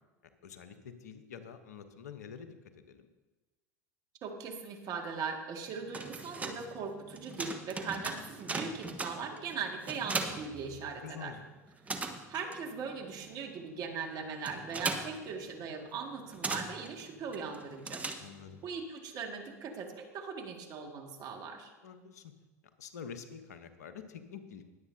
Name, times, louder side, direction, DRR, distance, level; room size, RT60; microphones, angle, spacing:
voice 1, 0.4-3.1 10.7-11.4 18.2-18.6 21.8-22.3 22.8-24.7, left 7 dB, 80° left, 9 dB, 1.0 m, -47 dB
voice 2, 4.2-11.3 12.3-18.0 18.6-21.7, right 5 dB, 50° right, 2 dB, 2.2 m, -40 dB
sound 1, 5.7-11.3 11.5-18.6, right 3 dB, 15° right, 1.4 m, -40 dB
20.5 x 8.3 x 2.8 m, 1.2 s
hypercardioid pair, 80°, 9 cm